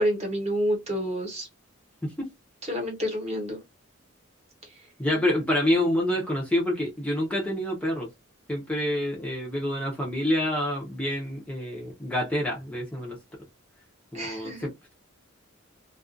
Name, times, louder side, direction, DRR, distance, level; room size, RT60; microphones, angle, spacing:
voice 1, 0.0-1.5 2.6-3.6 4.7-4.8 14.1-14.7, equal, 30° right, 1.0 m, -28 dB
voice 2, 5.0-8.1 8.5-13.2 14.1-14.9, left 1 dB, 5° left, 0.6 m, -27 dB
2.4 x 2.3 x 2.4 m
head